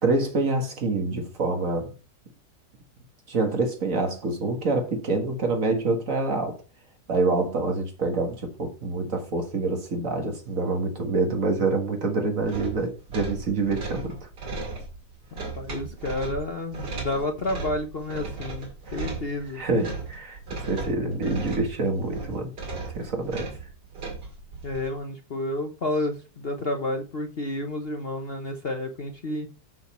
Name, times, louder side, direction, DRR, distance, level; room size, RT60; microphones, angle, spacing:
voice 1, 0.0-1.9 3.3-6.6 7.1-14.3 19.5-22.5 22.9-23.5, right 3 dB, 50° right, 1.9 m, -26 dB
sound 1, 12.4-24.9, right 4 dB, 85° right, 2.8 m, -36 dB
voice 2, 15.3-19.6 24.6-29.5, left 2 dB, 45° left, 0.9 m, -30 dB
7.0 x 6.2 x 4.3 m
omnidirectional pair, 1.8 m